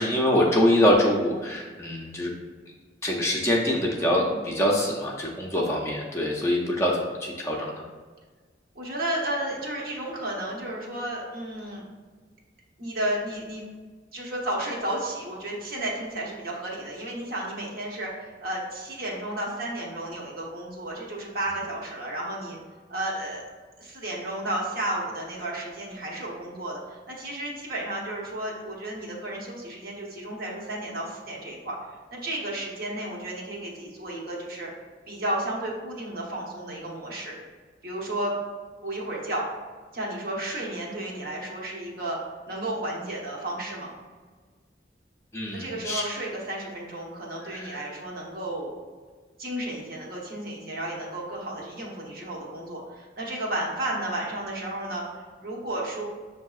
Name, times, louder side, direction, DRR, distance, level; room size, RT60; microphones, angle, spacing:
voice 1, 0.0-2.3 3.0-7.7 45.3-46.0 47.5-47.8, left 1 dB, 15° left, -3 dB, 0.5 m, -24 dB
voice 2, 4.0-4.5 8.7-11.8 12.8-13.6 14.1-22.6 22.9-23.4 23.8-31.8 32.1-34.7 35.1-37.3 37.8-38.4 38.8-39.4 39.9-42.2 42.5-43.9 45.5-48.8 49.4-55.0 55.4-56.0, right 1 dB, 55° right, -3 dB, 0.9 m, -33 dB
6.3 x 2.7 x 2.3 m, 1.5 s
head